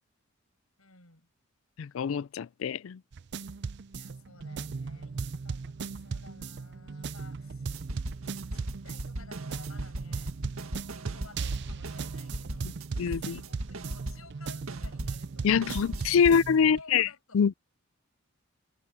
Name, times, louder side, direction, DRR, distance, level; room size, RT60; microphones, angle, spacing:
voice 1, 0.8-1.3 3.9-7.8 8.5-10.4 10.8-17.5, left 4 dB, 85° left, 7.3 m, -54 dB
voice 2, 1.8-3.0 12.6-12.7 13.0-13.4 15.4-17.1 17.3-17.6, left 7 dB, 65° left, 0.4 m, -25 dB
sound 1, 3.1-16.8, right 4 dB, 55° right, 0.5 m, -37 dB
sound 2, 7.7-14.4 14.7-16.5, right 1 dB, 80° right, 1.9 m, -39 dB
head